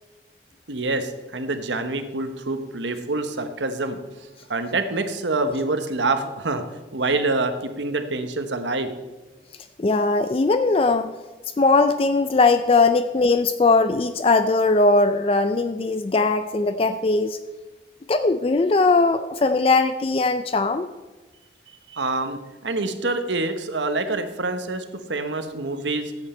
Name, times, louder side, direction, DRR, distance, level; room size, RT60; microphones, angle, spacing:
voice 1, 0.7-4.0 4.5-6.6 6.9-8.9 21.9-26.1, right 2 dB, 85° right, 8 dB, 1.1 m, -26 dB
voice 2, 9.8-11.1 11.6-17.4 18.1-20.9, left 3 dB, 30° left, 10 dB, 0.4 m, -19 dB
14.5 x 8.0 x 4.4 m, 1.2 s
head